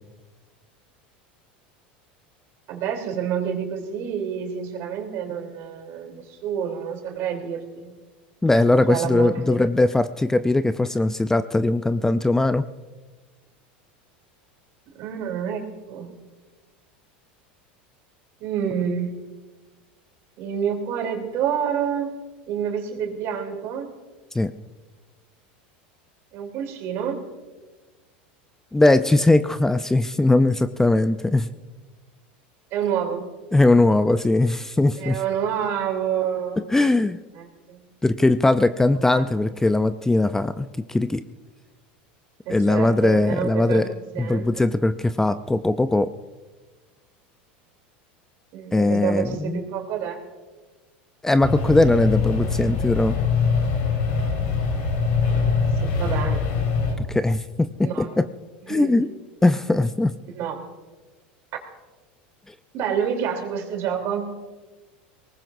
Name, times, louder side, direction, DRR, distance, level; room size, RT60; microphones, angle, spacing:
voice 1, 2.7-7.9 8.9-9.7 14.9-16.1 18.4-19.1 20.4-22.1 22.5-23.9 26.3-27.2 32.7-33.3 35.0-36.6 37.3-37.9 39.1-39.3 42.4-44.5 48.5-50.2 55.3-56.4 57.8-58.2 58.7-58.9 60.3-60.7 61.5-61.6 62.7-64.4, right 8 dB, 55° right, 3 dB, 3.4 m, -28 dB
voice 2, 8.4-12.6 24.3-24.5 28.7-31.5 33.5-35.2 36.7-37.2 38.0-41.2 42.5-43.9 44.2-46.1 48.7-49.6 51.2-53.2 57.0-58.3 58.7-59.1 59.4-60.1, left 2 dB, 10° left, 11 dB, 0.5 m, -20 dB
sound 1, 51.4-56.9, left 5 dB, 70° left, 4.7 m, -23 dB
22.5 x 19.5 x 2.7 m, 1.3 s
hypercardioid pair, 105°, 5 cm